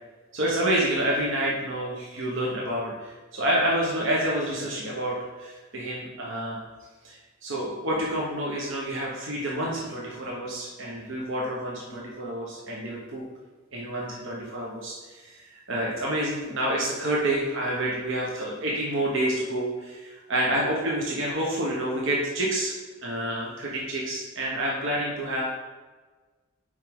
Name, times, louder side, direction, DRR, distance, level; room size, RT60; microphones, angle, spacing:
voice 1, 0.3-6.6 7.0-13.2 13.7-22.7 23.0-25.5, right 1 dB, 60° right, -4 dB, 1.2 m, -28 dB
5.5 x 4.8 x 5.4 m, 1.3 s
head